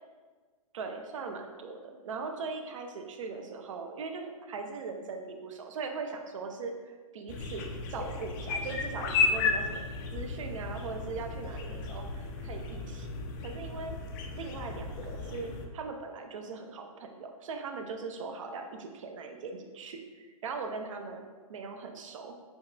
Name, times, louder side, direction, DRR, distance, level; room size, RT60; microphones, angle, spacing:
voice 1, 0.7-9.8 10.1-13.1 13.4-13.9 14.3-21.2 21.5-22.3, right 4 dB, 60° right, 5 dB, 0.6 m, -40 dB
sound 1, 7.3-15.7, left 4 dB, 35° left, 0.5 m, -34 dB
6.8 x 2.3 x 2.3 m, 1.4 s
figure-of-eight pair, 120°, 19 cm